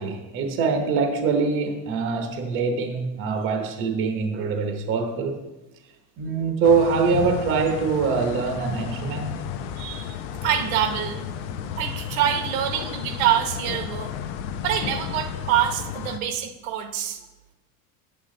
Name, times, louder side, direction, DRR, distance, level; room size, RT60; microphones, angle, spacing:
voice 1, 0.0-5.4 6.2-9.3, right 5 dB, 30° right, 4 dB, 0.9 m, -24 dB
sound 1, 6.6-16.2, left 8 dB, 55° left, 0.7 m, -33 dB
voice 2, 9.8-10.2 10.4-11.2 11.8-14.1 14.6-17.2, right 10 dB, 75° right, 7 dB, 1.1 m, -25 dB
9.3 x 8.3 x 3.8 m, 1.0 s
cardioid pair, 180°, 41 cm